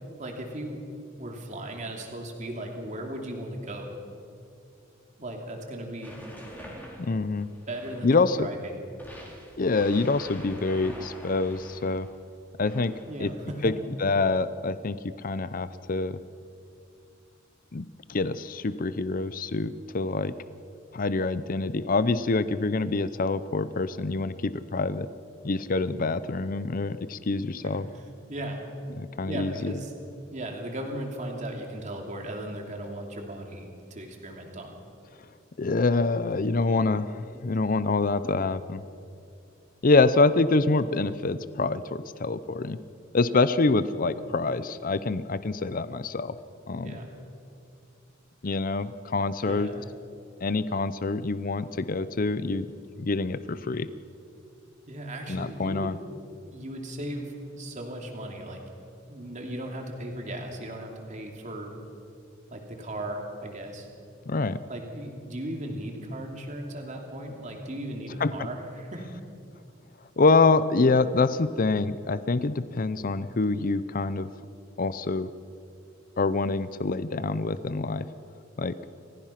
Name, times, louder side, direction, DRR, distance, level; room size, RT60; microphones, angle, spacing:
voice 1, 0.2-0.8 1.2-4.0 5.2-6.2 7.7-8.8 13.1-13.6 27.6-28.0 28.3-28.6 29.3-29.9 30.3-34.8 37.3-37.4 46.8-47.1 49.4-49.7 54.9-55.9 56.5-58.6 59.1-61.7 62.5-63.9 64.7-69.1, right 1 dB, 40° right, 2 dB, 2.9 m, -37 dB
sound 1, 6.0-8.3 9.0-12.1 12.6-13.3, equal, 10° left, 3.8 m, -45 dB
voice 2, 7.0-7.5 8.0-8.5 9.6-12.1 12.6-12.9 13.2-13.3 13.6-13.7 14.0-16.2 17.7-17.8 18.1-20.3 20.9-25.1 25.4-27.8 29.0-29.7 35.6-38.8 39.8-42.8 43.1-46.4 46.7-47.0 48.4-49.7 50.4-52.7 53.0-53.9 55.3-55.9 64.3-64.6 68.2-68.5 70.2-74.3 74.8-75.3 76.2-78.1 78.6-78.8, left 3 dB, 45° left, 14 dB, 0.6 m, -26 dB
29.5 x 15.5 x 5.9 m, 2.5 s
head